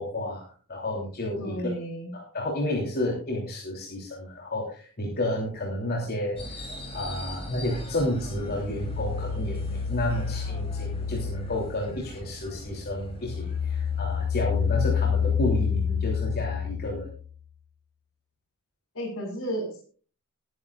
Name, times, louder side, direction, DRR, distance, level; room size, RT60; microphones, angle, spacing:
voice 1, 0.0-1.5 2.1-6.6 6.9-17.1, left 1 dB, 45° left, -2 dB, 3.3 m, -31 dB
voice 2, 1.4-2.1 18.9-19.8, equal, 65° left, 4 dB, 5.3 m, -32 dB
sound 1, 6.4-16.3, left 1 dB, 25° left, 3.5 m, -42 dB
sound 2, 8.5-12.4 12.8-17.4, left 7 dB, 85° left, 0.6 m, -29 dB
20.0 x 10.5 x 2.5 m, 0.39 s
head